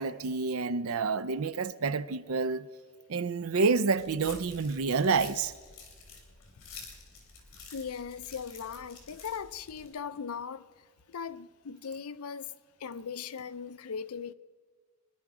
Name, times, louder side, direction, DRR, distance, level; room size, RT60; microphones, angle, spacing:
voice 1, 0.0-2.7 3.1-5.5, right 4 dB, 75° right, 0.5 m, -28 dB
sound 1, 4.0-9.9, left 4 dB, 65° left, 3.4 m, -49 dB
voice 2, 7.7-10.7 11.1-12.5 12.8-14.3, left 6 dB, 85° left, 0.5 m, -39 dB
23.0 x 11.0 x 4.9 m
head